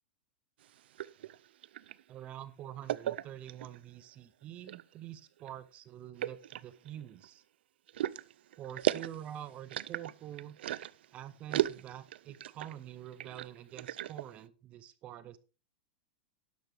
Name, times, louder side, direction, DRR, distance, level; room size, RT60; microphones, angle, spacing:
sound 1, 0.6-2.0 2.9-3.8 4.4-4.9 5.4-5.5 6.2-7.3 7.9-11.1 11.5-12.7 13.1-14.3, right 12 dB, 75° right, 0.5 m, -36 dB
voice 1, 2.1-7.4 8.6-10.6 11.1-15.4, right 11 dB, 20° right, 15 dB, 0.5 m, -46 dB
12.0 x 10.5 x 3.4 m, 0.33 s
supercardioid pair, 175°, 6 cm